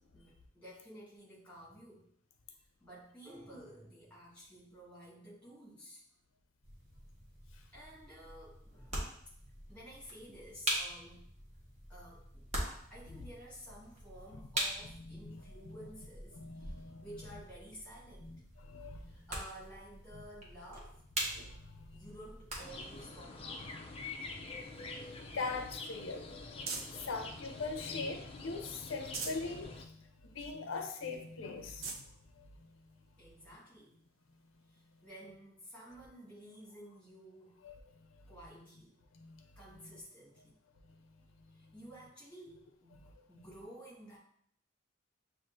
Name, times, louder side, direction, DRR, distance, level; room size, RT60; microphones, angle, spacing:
voice 1, 0.1-2.1 2.8-6.0 7.7-9.1 9.7-11.3 11.9-18.4 19.0-21.0 21.9-23.8 33.2-34.0 34.7-37.6 38.3-38.9 39.5-40.6 41.5-44.2, right 1 dB, 5° left, -6 dB, 1.7 m, -53 dB
sound 1, 6.6-23.0, right 1 dB, 35° right, 1.0 m, -43 dB
voice 2, 15.1-15.8 16.4-17.0 18.2-19.1 21.3-21.5 22.0-22.1 25.3-26.4 27.0-29.9 30.3-31.9 37.6-37.7 39.2-39.4, left 3 dB, 85° left, 5 dB, 0.5 m, -41 dB
sound 2, 22.6-29.8, left 3 dB, 30° left, 0.4 m, -46 dB
sound 3, 24.5-27.1 27.7-28.4 28.8-29.5 30.0-30.1 30.4-30.5 31.1-31.2 31.6-32.1 32.9-33.0 34.8-34.9, right 4 dB, 90° right, 0.6 m, -45 dB
7.2 x 2.5 x 2.6 m, 0.66 s
head